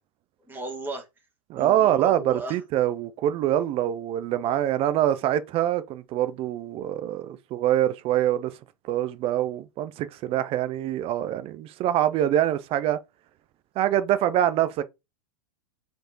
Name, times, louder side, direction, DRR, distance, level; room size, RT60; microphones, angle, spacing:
voice 1, 0.5-1.1 1.5-2.6, right 2 dB, 10° right, 2.1 m, -35 dB
voice 2, 1.5-8.5 8.8-13.0 13.8-14.8, right 12 dB, 35° right, 0.6 m, -24 dB
5.1 x 4.6 x 4.5 m
supercardioid pair, 135°, 17 cm